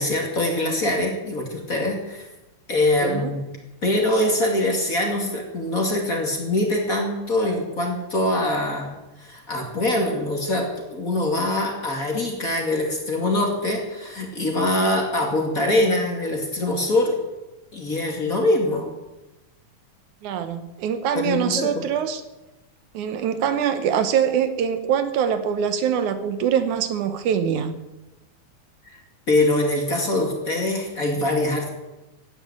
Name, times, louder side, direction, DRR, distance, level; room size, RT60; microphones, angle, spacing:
voice 1, 0.0-2.3 2.7-3.5 3.8-17.2 17.7-18.9 21.1-21.7 29.3-31.7, left 1 dB, 30° left, 1 dB, 2.6 m, -23 dB
voice 2, 3.0-3.3 20.2-22.2 22.9-27.8, right 8 dB, 75° right, 10 dB, 2.4 m, -23 dB
15.0 x 9.7 x 8.8 m, 1.0 s
omnidirectional pair, 3.5 m